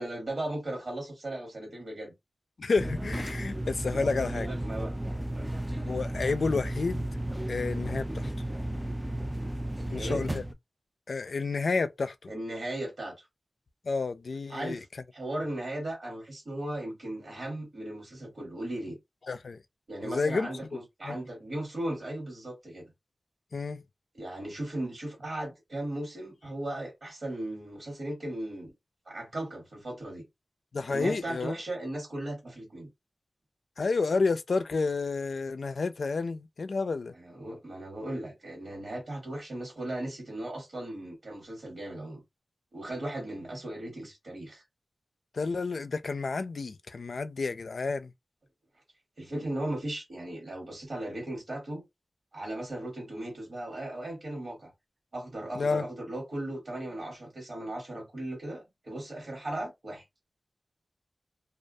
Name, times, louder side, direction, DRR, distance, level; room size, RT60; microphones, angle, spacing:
voice 1, 0.0-2.1 4.0-4.9 5.3-5.5 9.7-10.2 12.3-13.2 14.5-14.9 15.1-19.0 19.9-22.9 24.1-28.7 29.1-30.2 30.9-32.9 37.1-42.2 42.7-44.6 49.2-51.8 52.3-54.7 55.1-60.0, right 1 dB, 75° right, 1.2 m, -37 dB
voice 2, 2.6-4.5 5.8-7.0 7.5-8.3 9.9-10.4 11.1-12.3 13.8-14.8 19.3-19.6 20.0-20.5 21.0-21.2 23.5-23.8 30.7-31.6 33.8-37.1 45.3-48.1 55.6-55.8, left 4 dB, 80° left, 0.3 m, -30 dB
sound 1, 2.8-10.5, right 1 dB, 10° right, 0.3 m, -34 dB
2.3 x 2.2 x 2.6 m
wide cardioid pair, 70°, 0 cm